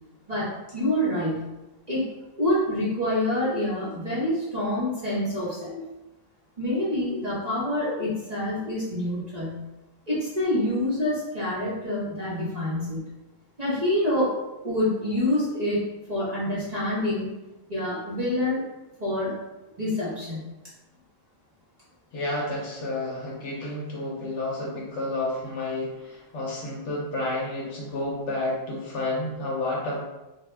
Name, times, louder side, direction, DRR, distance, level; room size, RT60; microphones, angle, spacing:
voice 1, 0.3-1.5 1.9-2.1 2.4-5.8 6.6-9.6 10.1-13.1 13.6-14.4 14.6-15.8 16.1-17.3 17.7-18.6 19.0-19.3 19.8-20.4, left 1 dB, 35° right, -9 dB, 0.9 m, -26 dB
voice 2, 22.1-30.0, left 2 dB, 65° left, -3 dB, 0.9 m, -30 dB
2.7 x 2.3 x 3.2 m, 1.0 s
omnidirectional pair, 1.5 m